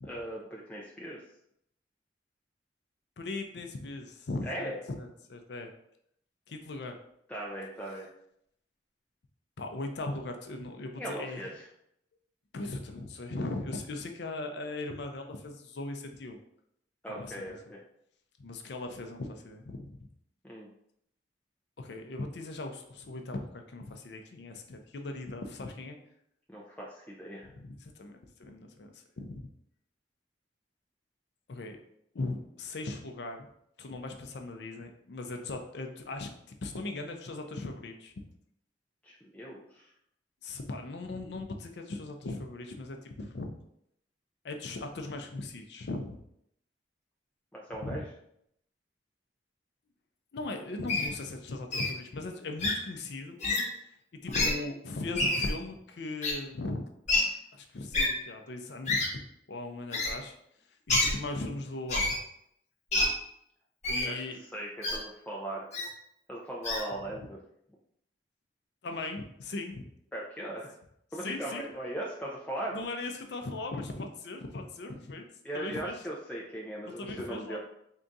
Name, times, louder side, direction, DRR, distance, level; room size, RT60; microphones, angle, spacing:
voice 1, 0.1-1.2 4.4-4.8 7.3-8.1 11.0-11.7 17.0-17.8 20.4-20.7 26.5-27.5 39.0-39.9 47.5-48.1 57.3-57.4 64.0-64.2 64.5-65.7 66.3-67.4 70.1-70.7 71.1-72.8 75.4-77.6, right 1 dB, 10° left, -4 dB, 0.4 m, -38 dB
voice 2, 3.2-5.7 6.5-7.0 9.6-11.4 12.5-16.4 17.1-17.6 18.4-20.0 21.8-26.0 27.4-29.5 31.5-31.8 32.1-33.5 33.8-38.1 40.4-43.5 44.4-46.2 47.8-48.0 50.3-53.3 54.2-56.9 57.5-59.1 59.5-60.3 60.9-62.1 63.9-64.4 67.2-67.3 68.8-69.8 71.2-71.6 72.7-75.2 75.5-75.9 77.0-77.6, left 2 dB, 70° left, 5 dB, 0.5 m, -38 dB
Wild animals, 50.9-51.1 51.7-51.9 52.6-52.7 53.4-53.6 54.3-54.5 55.1-55.5 56.2-56.3 57.1-57.2 57.9-58.1 58.9-59.1 59.9-60.1 60.9-61.1 61.9-62.2 62.9-63.1 63.8-64.1 64.8-65.0 65.7-65.9 66.6-66.8, left 2 dB, 40° left, 0.9 m, -27 dB
3.6 x 2.3 x 3.9 m, 0.74 s
head